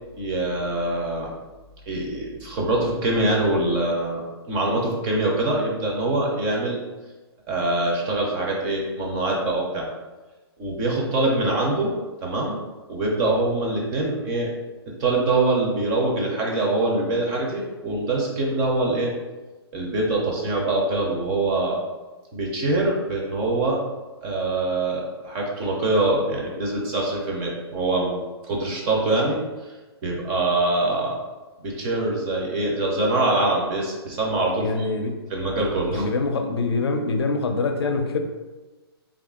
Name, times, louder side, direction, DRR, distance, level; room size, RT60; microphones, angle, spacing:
voice 1, 0.2-1.3 1.9-6.8 7.5-9.9 10.6-12.0 12.2-12.6 12.9-14.5 15.0-19.1 19.7-21.8 22.3-23.8 24.2-29.4 30.0-31.2 31.6-34.9 35.3-36.0, right 2 dB, 15° right, -2 dB, 0.4 m, -24 dB
voice 2, 34.6-35.2 35.9-38.2, left 3 dB, 70° left, 5 dB, 0.5 m, -24 dB
3.5 x 2.4 x 3.6 m, 1.2 s
hypercardioid pair, 170°, 14 cm